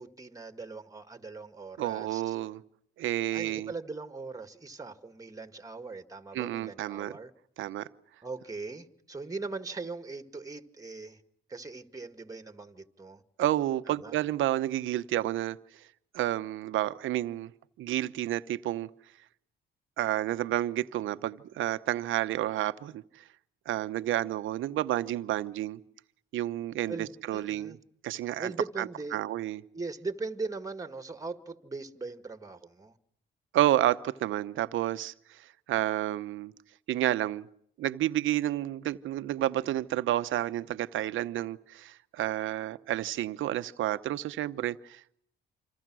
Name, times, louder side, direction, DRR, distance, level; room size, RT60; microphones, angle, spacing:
voice 1, 0.0-2.2 3.3-7.3 8.2-11.2 11.5-13.2 13.9-14.1 26.9-27.8 28.4-29.2 29.7-32.9, right 3 dB, 15° right, 2.1 m, -40 dB
voice 2, 1.8-2.6 3.0-3.7 6.3-7.1 7.6-7.9 13.4-15.8 16.1-17.5 17.8-18.9 20.0-23.3 23.7-25.8 26.3-27.8 28.0-28.5 28.8-29.6 33.5-36.5 36.9-37.5 37.8-45.1, right 13 dB, 80° right, 1.0 m, -30 dB
28.0 x 26.0 x 6.3 m
cardioid pair, 90°, 20 cm